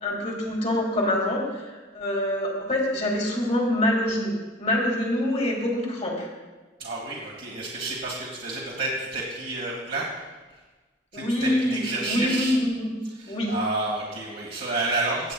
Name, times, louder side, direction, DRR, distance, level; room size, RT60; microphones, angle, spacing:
voice 1, 0.0-4.3 4.6-6.3 11.1-12.9 13.3-13.5, left 1 dB, 40° left, 0 dB, 2.1 m, -25 dB
voice 2, 6.8-10.1 11.1-12.5 13.0-15.3, right 2 dB, 60° right, -5 dB, 1.7 m, -30 dB
16.5 x 8.4 x 2.3 m, 1.3 s
head